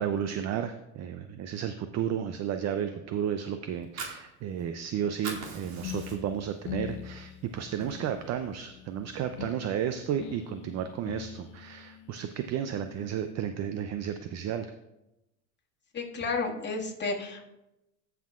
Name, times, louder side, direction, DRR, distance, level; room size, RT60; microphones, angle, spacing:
voice 1, 0.0-14.7, right 9 dB, 40° right, 9 dB, 0.5 m, -33 dB
Fire, 3.7-4.9 5.1-6.5 6.9-7.0 7.4-8.4, right 4 dB, 60° right, 2.1 m, -41 dB
sound 1, 5.8-13.3, left 13 dB, 70° left, 0.7 m, -44 dB
voice 2, 15.9-17.4, left 3 dB, 25° left, -2 dB, 1.8 m, -32 dB
16.5 x 5.8 x 2.4 m, 0.94 s
supercardioid pair, 100°, 40 cm